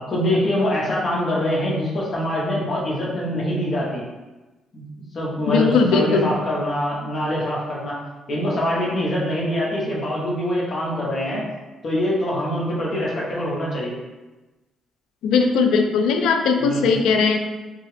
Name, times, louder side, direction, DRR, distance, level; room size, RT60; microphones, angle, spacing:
voice 1, 0.1-4.0 4.7-4.8 5.1-8.0 8.3-11.4 11.8-14.0 16.6-16.9, equal, 50° left, -4 dB, 0.8 m, -24 dB
voice 2, 5.5-6.3 15.2-17.4, left 5 dB, 85° left, 5 dB, 0.3 m, -19 dB
2.7 x 2.3 x 3.2 m, 1.1 s
cardioid pair, 90°, 0 cm